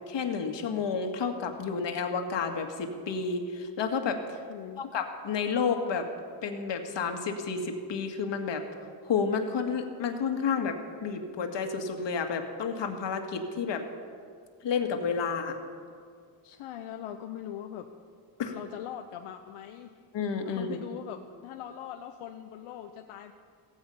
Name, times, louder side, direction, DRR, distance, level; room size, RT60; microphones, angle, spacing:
voice 1, 0.1-4.4 4.8-6.1 6.4-8.6 9.0-13.8 14.6-15.6 18.4-18.5 20.1-20.8, left 5 dB, 60° left, 5 dB, 2.0 m, -30 dB
voice 2, 4.5-4.8 16.4-17.9 18.5-20.0 20.4-23.3, left 10 dB, 80° left, 5 dB, 1.0 m, -41 dB
15.5 x 15.5 x 5.7 m, 2.2 s
cardioid pair, 80°, 49 cm